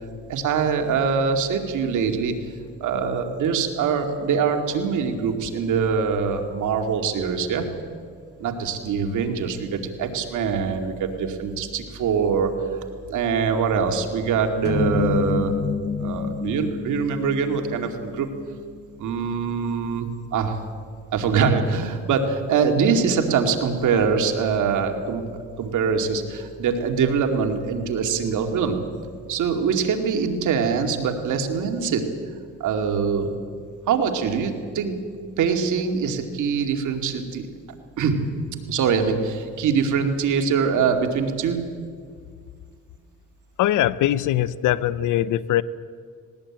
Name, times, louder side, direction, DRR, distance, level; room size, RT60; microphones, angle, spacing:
voice 1, 0.3-2.3 2.8-7.7 8.4-12.7 13.1-15.5 16.0-18.3 19.0-20.6 21.1-25.2 25.6-28.8 29.3-32.0 32.6-33.3 33.9-35.0 35.4-37.5 38.0-38.2 38.7-41.6, right 6 dB, 75° right, 5 dB, 2.5 m, -23 dB
sound 1, 14.6-19.0, left 6 dB, 35° left, 0.9 m, -28 dB
voice 2, 43.6-45.6, left 13 dB, 80° left, 18 dB, 0.7 m, -21 dB
18.5 x 18.5 x 8.8 m, 2.1 s
cardioid pair, 90°, 30 cm